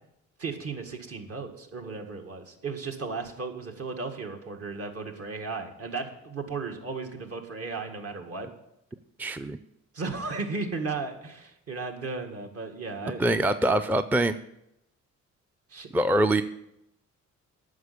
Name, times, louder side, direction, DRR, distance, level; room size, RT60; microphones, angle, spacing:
voice 1, 0.4-8.5 9.9-13.4 15.7-15.9, right 4 dB, 50° right, 4 dB, 1.9 m, -35 dB
voice 2, 9.2-9.6 13.2-14.4 15.9-16.4, right 1 dB, 5° right, 10 dB, 0.4 m, -24 dB
9.4 x 6.6 x 8.5 m, 0.82 s
cardioid pair, 90°, 30 cm